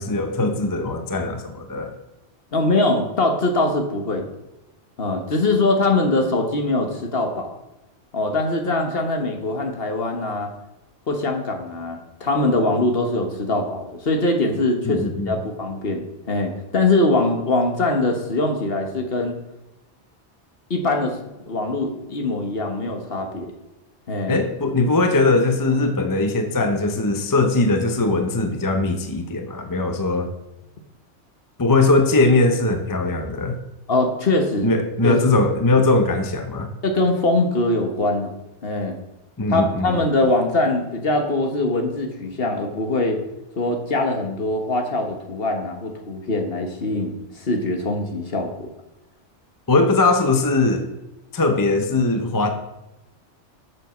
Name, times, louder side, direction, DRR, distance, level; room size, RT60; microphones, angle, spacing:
voice 1, 0.0-1.9 14.8-15.4 24.3-30.3 31.6-33.5 34.6-36.7 39.4-40.0 49.7-50.9 51.3-52.5, left 2 dB, 20° left, 6 dB, 0.7 m, -20 dB
voice 2, 2.5-4.3 5.0-7.5 8.1-10.5 11.1-19.4 20.7-23.5 24.1-24.4 33.9-34.7 35.0-35.2 36.8-38.3 38.6-38.9 39.5-43.2 43.6-48.7, left 2 dB, 55° left, 3 dB, 1.5 m, -22 dB
7.3 x 7.0 x 6.0 m, 0.98 s
omnidirectional pair, 1.2 m